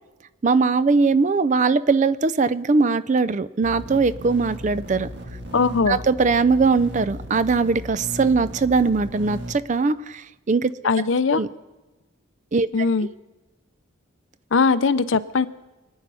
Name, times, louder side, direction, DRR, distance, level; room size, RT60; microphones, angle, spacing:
voice 1, 0.4-5.1 5.9-10.7 11.3-11.5 12.5-12.7, right 4 dB, 35° right, 16 dB, 0.4 m, -20 dB
sound 1, 3.6-9.5, equal, 55° right, 1.6 m, -36 dB
voice 2, 5.5-6.0 10.8-11.4 12.7-13.1 14.5-15.5, left 4 dB, 70° left, 15 dB, 0.6 m, -20 dB
24.5 x 9.5 x 5.5 m, 1.1 s
head